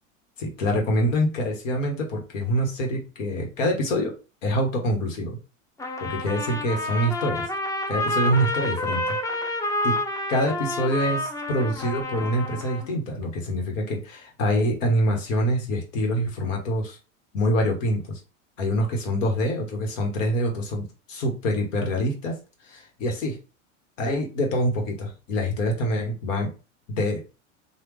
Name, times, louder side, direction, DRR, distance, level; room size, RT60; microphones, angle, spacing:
voice 1, 0.4-4.1 4.4-5.4 6.0-7.4 7.9-9.2 9.8-9.9 10.3-17.0 17.3-18.2 18.6-22.3 22.7-23.4 24.0-26.5 27.0-27.2, equal, 75° left, 1 dB, 1.3 m, -25 dB
Trumpet, 5.8-12.9, left 1 dB, 10° left, 0.5 m, -29 dB
3.3 x 2.4 x 3.1 m, 0.32 s
hypercardioid pair, 90°, 39 cm